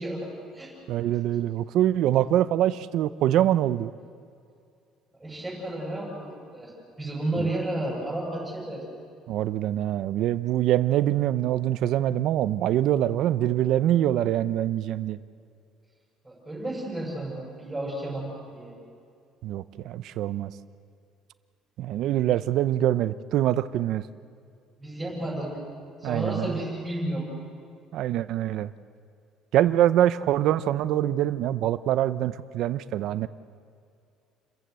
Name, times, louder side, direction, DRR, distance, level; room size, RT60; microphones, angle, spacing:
voice 1, 0.0-0.7 5.2-8.8 16.2-18.7 24.8-25.6 26.0-27.3, right 1 dB, 5° right, -5 dB, 6.4 m, -32 dB
voice 2, 0.9-3.9 7.4-7.5 9.3-15.2 19.4-20.5 21.8-24.1 26.0-26.5 27.9-28.7 29.5-33.3, right 12 dB, 55° right, 14 dB, 0.6 m, -24 dB
29.0 x 15.0 x 7.7 m, 2.4 s
cardioid pair, 165°, 0 cm